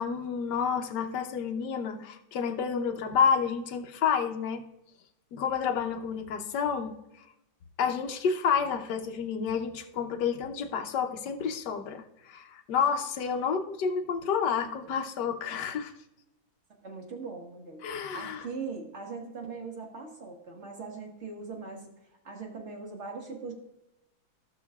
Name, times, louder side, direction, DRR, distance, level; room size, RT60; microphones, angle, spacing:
voice 1, 0.0-4.6 5.3-7.0 7.8-15.9 17.8-18.5, left 6 dB, 65° left, 4 dB, 1.4 m, -29 dB
voice 2, 16.8-17.9 18.1-21.9 22.2-23.5, right 4 dB, 40° right, 1 dB, 1.6 m, -40 dB
16.0 x 6.2 x 2.4 m, 0.89 s
omnidirectional pair, 2.2 m